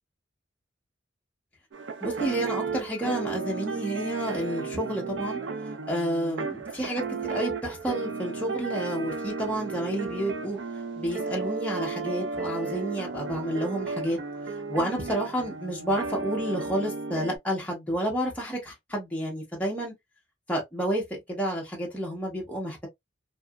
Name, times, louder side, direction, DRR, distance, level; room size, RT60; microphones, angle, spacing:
sound 1, 1.7-17.4, right 4 dB, 65° right, 0.4 m, -34 dB
voice 1, 2.0-5.4 5.9-10.6 11.0-14.2 14.7-19.9 20.5-22.9, equal, 5° left, 0.8 m, -30 dB
2.8 x 2.4 x 2.2 m
head